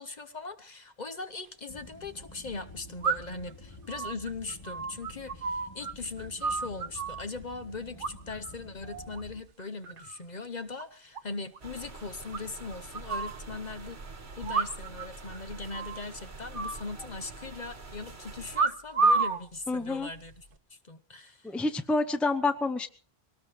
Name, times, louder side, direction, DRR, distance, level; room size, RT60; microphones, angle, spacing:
voice 1, 0.0-14.0 14.4-21.6, left 3 dB, 45° left, 8 dB, 1.0 m, -40 dB
sound 1, 1.2-1.3 3.0-3.5 3.9-5.9 6.2-7.2 8.0-8.5 8.8-9.2 9.6-10.2 10.4-10.5 10.8-10.9 11.2-11.3 11.6-11.7 12.3-13.4 14.4-15.1 15.3-15.4 15.7-16.1 16.5-17.5 18.5-19.4 20.2-20.5, right 4 dB, 55° right, 1.2 m, -30 dB
sound 2, 1.7-9.4, left 2 dB, 25° left, 1.2 m, -49 dB
sound 3, 11.6-18.6, right 3 dB, 70° right, 1.9 m, -45 dB
voice 2, 19.7-20.1 21.4-22.9, left 3 dB, ahead, 9 dB, 0.7 m, -28 dB
23.5 x 18.5 x 3.2 m, 0.38 s
omnidirectional pair, 1.1 m